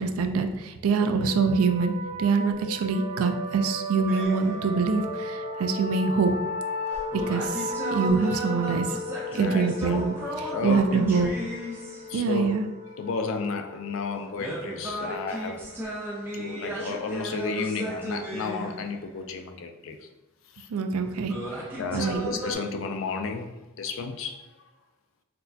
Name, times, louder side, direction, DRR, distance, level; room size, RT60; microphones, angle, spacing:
voice 1, 0.0-6.3 7.1-9.0 9.3-11.3 12.1-12.7 20.7-21.6 21.9-22.3, right 4 dB, 75° right, 7 dB, 0.3 m, -25 dB
sound 1, 1.0-16.3, left 1 dB, 45° right, 0.7 m, -35 dB
sound 2, 4.1-5.0 6.9-12.5 14.4-19.3 21.2-22.5, right 1 dB, 10° right, 0.5 m, -35 dB
voice 2, 9.3-10.0 10.5-11.0 12.1-12.5 13.0-15.6 16.3-20.0 20.6-20.7 21.8-23.5 23.8-24.4, left 4 dB, 60° left, 6 dB, 0.3 m, -32 dB
4.1 x 2.2 x 2.6 m, 1.0 s
head